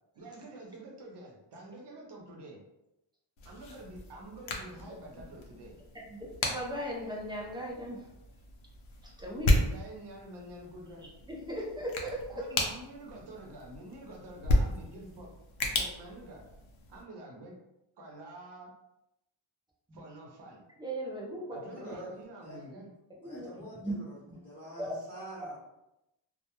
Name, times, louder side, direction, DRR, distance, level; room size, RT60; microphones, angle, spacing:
voice 1, 0.2-2.6 3.4-5.8 9.6-11.1 12.3-15.3 15.7-16.5 16.9-17.6 18.0-18.7 19.9-20.6 21.5-22.9, right 1 dB, 55° right, -1 dB, 0.7 m, -47 dB
sound 1, 3.4-17.0, left 1 dB, 70° left, 0.6 m, -34 dB
voice 2, 6.4-8.0 9.0-9.6 11.3-12.2 20.8-21.6 23.2-23.5 23.7-24.0 24.8-24.9, right 1 dB, 10° right, -3 dB, 0.3 m, -37 dB
voice 3, 21.7-22.6 23.2-25.6, equal, 10° left, -9 dB, 0.8 m, -46 dB
2.2 x 2.1 x 2.9 m, 0.90 s
wide cardioid pair, 160°, 49 cm